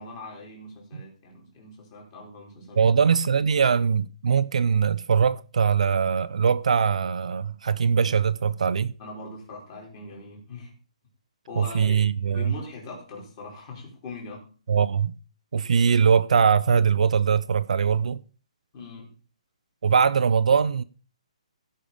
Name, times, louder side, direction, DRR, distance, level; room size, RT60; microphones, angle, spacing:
voice 1, 0.0-3.0 9.0-10.7 11.5-14.5 18.7-19.1, left 3 dB, 25° left, 3.9 m, -41 dB
voice 2, 2.8-8.9 11.6-12.5 14.7-15.1 15.5-18.2 19.8-20.8, right 6 dB, 65° right, 0.6 m, -21 dB
15.5 x 5.7 x 5.2 m
hypercardioid pair, 175°, 4 cm